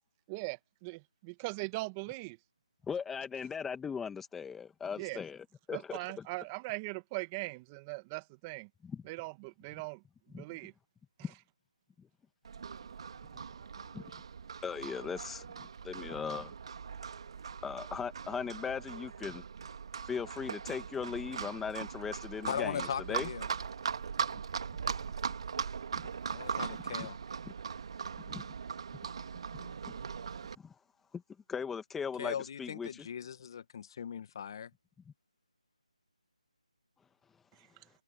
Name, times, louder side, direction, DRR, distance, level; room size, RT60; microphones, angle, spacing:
voice 1, 0.3-2.4 5.0-5.2 5.7-8.7 9.1-10.0 10.3-10.7, right 24 dB, 15° right, 1.6 m, -40 dB
voice 2, 2.8-6.3 8.8-9.0 10.3-10.5 11.2-11.3 12.0-12.1 13.9-14.1 14.6-16.5 17.6-19.4 20.1-23.3 27.0-27.1 27.4-27.5 28.2-28.4 29.6-29.7 30.6-30.7 31.1-31.2 31.5-33.1, left 6 dB, 5° left, 2.2 m, -39 dB
Livestock farm animals working animals, 12.4-30.6, right 6 dB, 45° right, 2.3 m, -40 dB
voice 3, 22.5-23.5 26.3-27.2 32.2-34.7, left 8 dB, 35° left, 1.8 m, -39 dB
figure-of-eight pair, 160°, 4 cm